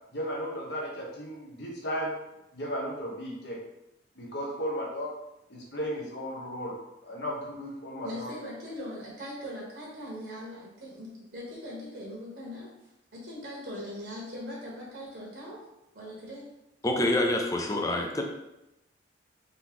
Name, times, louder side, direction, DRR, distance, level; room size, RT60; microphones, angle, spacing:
voice 1, 0.1-2.1 2.5-3.6 4.1-5.1 5.5-6.8 7.0-8.3, equal, 65° left, -3 dB, 1.1 m, -35 dB
voice 2, 8.0-12.7 13.1-15.6 15.9-16.5, left 1 dB, 60° right, -5 dB, 1.2 m, -40 dB
voice 3, 16.8-18.2, left 1 dB, 20° left, 2 dB, 0.5 m, -26 dB
4.0 x 3.0 x 3.6 m, 0.91 s
head